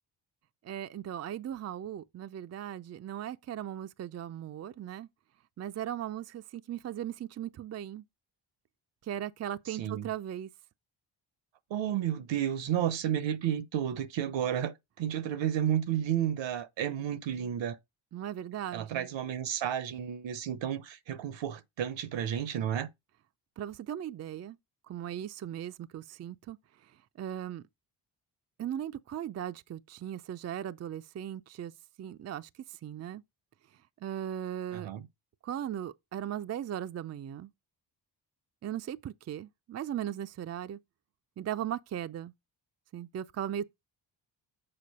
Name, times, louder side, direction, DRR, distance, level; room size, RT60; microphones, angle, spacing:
voice 1, 0.6-5.1 5.6-8.0 9.0-10.5 18.1-19.1 23.6-24.6 24.9-27.6 28.6-31.7 32.0-33.2 34.0-34.9 35.4-37.5 38.6-40.8 41.4-42.3 42.9-43.7, right 10 dB, 35° right, 0.4 m, -38 dB
voice 2, 9.7-10.1 11.7-17.8 18.7-22.9 34.7-35.0, right 10 dB, 70° right, 0.9 m, -32 dB
6.8 x 4.4 x 4.1 m
supercardioid pair, 60°, 47 cm